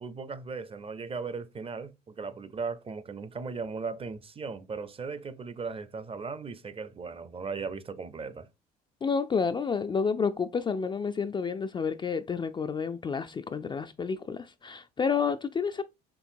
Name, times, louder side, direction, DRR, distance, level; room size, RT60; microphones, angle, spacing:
voice 1, 0.0-8.5, right 4 dB, 25° right, 0.5 m, -37 dB
voice 2, 9.0-15.8, left 5 dB, 25° left, 0.3 m, -30 dB
4.6 x 3.3 x 2.6 m
hypercardioid pair, 70°, 21 cm